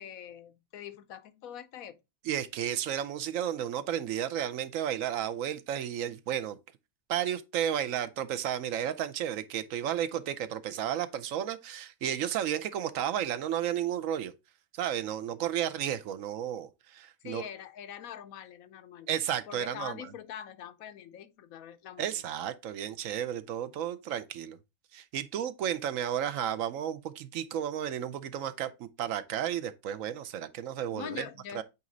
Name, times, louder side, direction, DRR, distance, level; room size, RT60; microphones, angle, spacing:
voice 1, 0.0-2.0 17.2-19.1 19.5-22.1 30.9-31.6, left 9 dB, 90° left, 1.1 m, -43 dB
voice 2, 2.2-6.6 7.1-14.3 14.7-17.4 19.1-20.0 22.0-24.6 24.9-31.3 31.5-31.6, right 10 dB, 75° right, 1.0 m, -33 dB
8.4 x 3.1 x 3.7 m
omnidirectional pair, 1.4 m